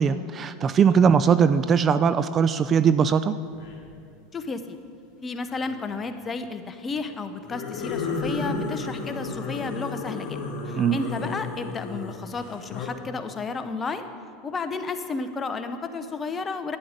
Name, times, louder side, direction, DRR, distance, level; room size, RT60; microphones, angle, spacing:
voice 1, 0.0-3.4 10.8-11.0, right 6 dB, 35° right, 14 dB, 0.4 m, -20 dB
sound 1, 3.5-3.9 5.4-6.0 7.4-12.9, left 4 dB, 55° left, 2.5 m, -33 dB
voice 2, 4.3-4.8 5.2-10.4 10.6-14.0 14.4-16.8, left 4 dB, 25° left, 9 dB, 0.9 m, -32 dB
11.5 x 9.6 x 5.1 m, 2.4 s
hypercardioid pair, 90°, 0 cm